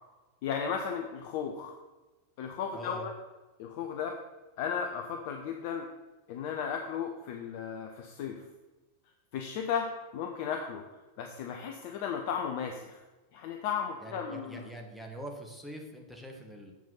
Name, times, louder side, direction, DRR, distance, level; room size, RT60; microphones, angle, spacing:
voice 1, 0.4-1.7 2.4-3.1 3.6-4.2 4.6-5.9 6.3-8.4 9.3-10.8 11.2-13.0 13.3-14.6, left 7 dB, 50° left, 3 dB, 0.8 m, -35 dB
voice 2, 2.7-3.1 14.0-16.7, right 1 dB, ahead, 1 dB, 1.6 m, -44 dB
7.7 x 5.3 x 5.7 m, 1.1 s
figure-of-eight pair, 90°, 0 cm